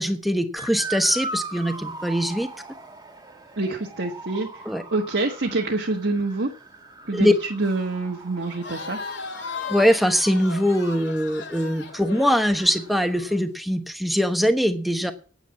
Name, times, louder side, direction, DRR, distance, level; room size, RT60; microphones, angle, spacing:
voice 1, 0.0-2.5 4.6-4.8 7.1-7.3 9.7-15.1, equal, ahead, 7 dB, 1.1 m, -22 dB
Motor vehicle (road) / Siren, 0.6-13.2, right 2 dB, 20° right, 1.8 m, -40 dB
voice 2, 3.6-4.5 4.9-6.5 7.1-9.0, right 2 dB, 65° right, 1 dB, 1.4 m, -26 dB
Crowd, 8.4-13.4, left 4 dB, 65° left, 2.1 m, -37 dB
9.1 x 9.0 x 8.6 m, 0.40 s
head